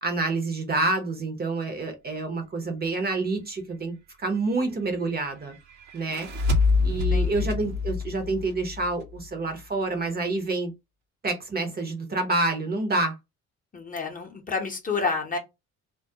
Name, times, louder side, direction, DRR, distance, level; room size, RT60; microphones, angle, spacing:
voice 1, 0.0-5.6 5.9-6.3 6.8-10.7 11.2-13.2, right 3 dB, 30° right, 0.7 m, -28 dB
sound 1, 5.9-9.2, left 4 dB, 70° right, 0.8 m, -25 dB
voice 2, 6.9-7.3 13.7-15.4, left 4 dB, 25° left, 0.7 m, -30 dB
2.2 x 2.0 x 2.7 m
cardioid pair, 90°, 30 cm